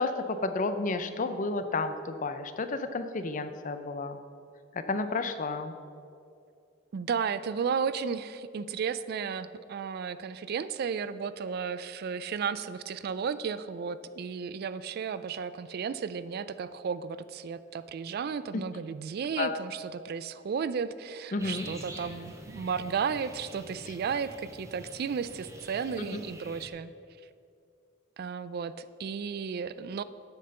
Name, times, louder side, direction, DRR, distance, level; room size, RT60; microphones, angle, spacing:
voice 1, 0.0-4.2 4.7-5.7 19.4-19.5 21.3-21.7 26.0-26.2, left 3 dB, 40° left, 9 dB, 0.5 m, -31 dB
voice 2, 6.9-26.9 28.2-30.0, right 6 dB, 50° right, 14 dB, 0.3 m, -34 dB
sound 1, 21.4-26.7, right 1 dB, 15° right, 0.9 m, -46 dB
8.6 x 5.8 x 6.5 m, 2.4 s
head